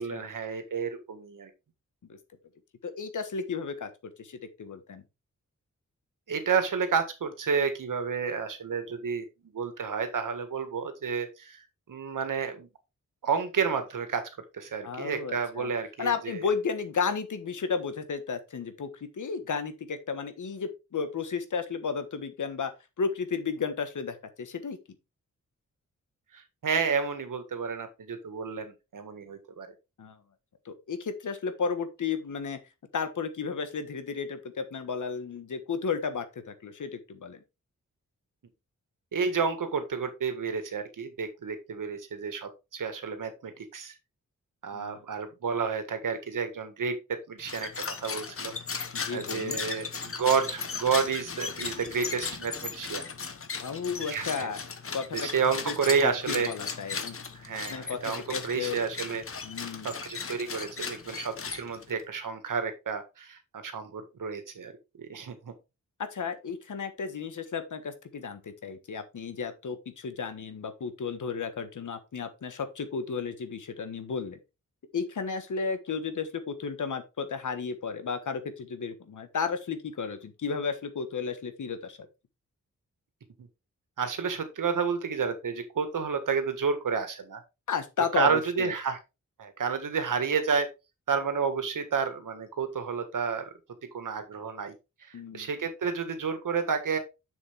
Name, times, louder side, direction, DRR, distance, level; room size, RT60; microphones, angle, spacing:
voice 1, 0.0-1.5 6.3-9.2 9.5-11.6 11.9-12.7 13.2-14.2 14.5-16.4 26.3-29.7 39.1-43.9 44.6-48.5 49.1-53.1 54.0-54.5 55.1-56.5 57.4-59.2 59.8-64.7 65.0-65.5 84.0-87.4 88.1-89.0 89.4-90.7 91.1-93.4 93.9-94.7 95.0-97.0, right 5 dB, 85° right, 8 dB, 1.7 m, -30 dB
voice 2, 2.8-3.9 4.2-5.0 14.8-15.7 16.0-22.7 23.0-24.8 30.0-30.2 30.6-32.6 32.9-37.4 44.7-45.0 48.9-49.6 53.6-54.6 54.9-55.3 55.7-55.8 56.0-57.2 57.7-58.8 59.4-59.9 66.0-74.4 74.9-82.0 87.7-88.7 95.1-95.5, left 5 dB, 70° left, 9 dB, 1.4 m, -33 dB
sound 1, 47.4-62.0, left 5 dB, 45° left, 1.1 m, -37 dB
7.0 x 6.9 x 3.4 m, 0.26 s
wide cardioid pair, 170°, 31 cm